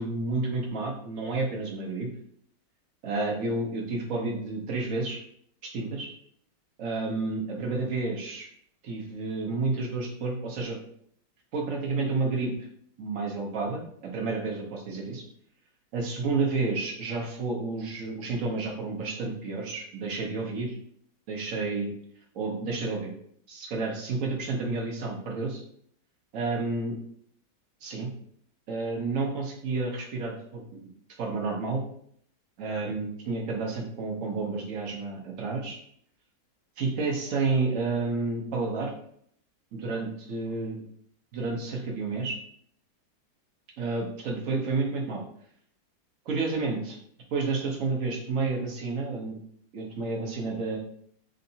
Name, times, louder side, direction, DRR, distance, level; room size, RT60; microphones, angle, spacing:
voice 1, 0.0-2.1 3.0-5.2 5.6-6.1 6.8-8.5 8.8-10.8 11.5-12.5 13.0-15.2 15.9-20.8 21.3-21.9 22.3-23.1 23.5-25.6 26.3-26.9 27.8-28.1 28.7-30.6 31.2-31.8 32.6-35.8 36.8-38.9 39.7-40.8 41.3-42.4 43.8-45.2 46.3-47.0 47.3-49.4 49.7-50.8, right 3 dB, 55° right, -1 dB, 1.1 m, -30 dB
3.8 x 3.2 x 2.7 m, 0.65 s
omnidirectional pair, 1.9 m